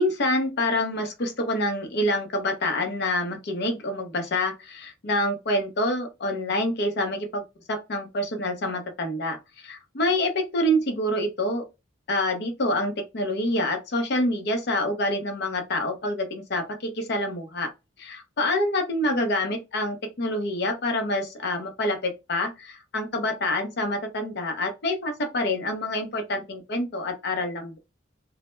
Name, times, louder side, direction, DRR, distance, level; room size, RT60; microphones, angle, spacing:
voice 1, 0.0-7.4 7.7-11.7 12.1-17.7 18.0-27.8, left 1 dB, 60° left, 0.6 m, -27 dB
2.1 x 2.0 x 3.0 m
head